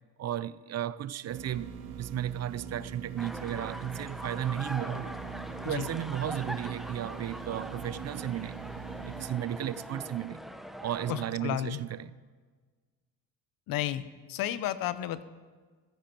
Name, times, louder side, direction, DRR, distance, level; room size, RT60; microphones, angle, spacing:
voice 1, 0.2-1.7 2.0-5.1 5.6-8.6 9.1-10.4 10.8-12.1, right 11 dB, 45° right, 0.5 m, -34 dB
sound 1, 1.3-9.3, right 7 dB, 85° right, 1.7 m, -42 dB
sound 2, 3.2-11.3, equal, ahead, 0.9 m, -42 dB
voice 2, 11.1-11.8 13.7-14.0 14.3-15.2, left 12 dB, 70° left, 0.9 m, -32 dB
15.0 x 14.0 x 4.5 m
supercardioid pair, 85°, 36 cm